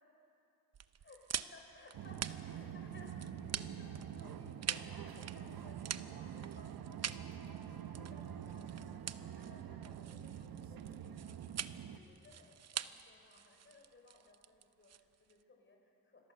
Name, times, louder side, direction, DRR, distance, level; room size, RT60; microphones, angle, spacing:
sound 1, 0.7-15.4, right 9 dB, 45° right, 0.8 m, -45 dB
voice 1, 1.0-11.6 11.9-16.3, left 2 dB, 35° left, 1 dB, 5.1 m, -61 dB
sound 2, 1.9-12.0, right 9 dB, 85° right, 1.1 m, -46 dB
27.0 x 22.0 x 6.9 m, 2.7 s
cardioid pair, 115°, 35 cm